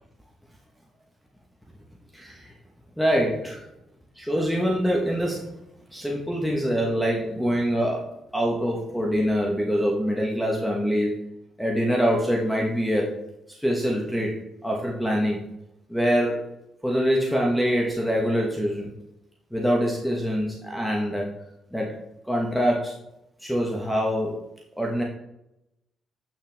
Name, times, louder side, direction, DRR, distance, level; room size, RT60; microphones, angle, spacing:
voice 1, 2.1-2.5 3.0-3.7 4.1-5.5 5.9-11.1 11.6-13.1 13.5-14.3 14.6-15.4 15.9-16.4 16.8-18.9 19.5-21.3 21.7-22.0 22.3-22.9 23.4-24.4 24.8-25.0, equal, ahead, -1 dB, 1.2 m, -24 dB
8.3 x 5.9 x 3.5 m, 0.87 s
cardioid pair, 90°, 0 cm